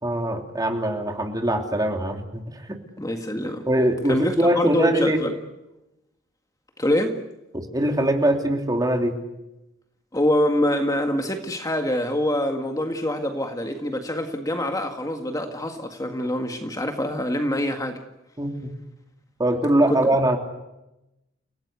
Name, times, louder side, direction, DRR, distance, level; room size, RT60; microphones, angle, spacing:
voice 1, 0.0-2.8 3.7-5.2 7.5-9.2 18.4-18.7 19.4-20.4, right 1 dB, 20° right, 4 dB, 3.1 m, -22 dB
voice 2, 3.0-3.7 4.1-5.4 6.8-7.2 10.1-18.0 19.9-20.0, left 1 dB, 20° left, 5 dB, 1.9 m, -25 dB
30.0 x 17.5 x 8.3 m, 0.92 s
head